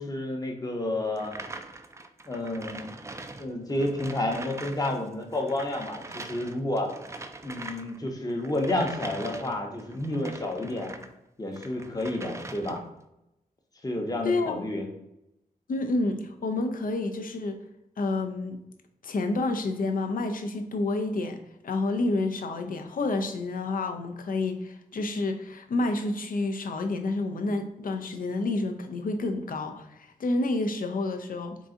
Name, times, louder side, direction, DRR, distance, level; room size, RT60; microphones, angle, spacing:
voice 1, 0.0-1.4 2.2-2.9 3.4-6.9 7.4-11.0 11.4-12.8 13.8-14.9, left 1 dB, 25° left, 1 dB, 0.8 m, -30 dB
sound 1, 1.1-5.0 5.2-11.1 11.5-13.0, right 2 dB, 20° right, 0.3 m, -42 dB
voice 2, 14.2-14.6 15.7-17.6 18.0-18.6 19.0-31.6, left 2 dB, 65° left, 6 dB, 0.5 m, -29 dB
3.9 x 2.4 x 3.7 m, 0.86 s
wide cardioid pair, 80°, 15 cm